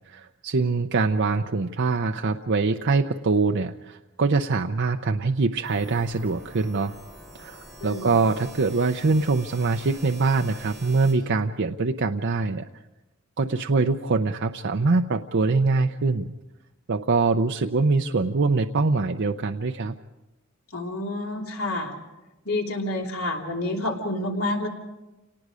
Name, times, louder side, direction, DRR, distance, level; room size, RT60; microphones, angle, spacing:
voice 1, 0.1-6.9 7.3-12.7 13.4-16.3 16.9-19.9, right 3 dB, 55° right, 5 dB, 0.6 m, -23 dB
sound 1, 5.6-11.1, right 1 dB, ahead, 7.0 m, -45 dB
voice 2, 7.8-8.2 20.7-22.0 22.4-24.7, left 1 dB, 80° left, 0 dB, 3.2 m, -29 dB
28.5 x 19.0 x 5.0 m, 1.0 s
head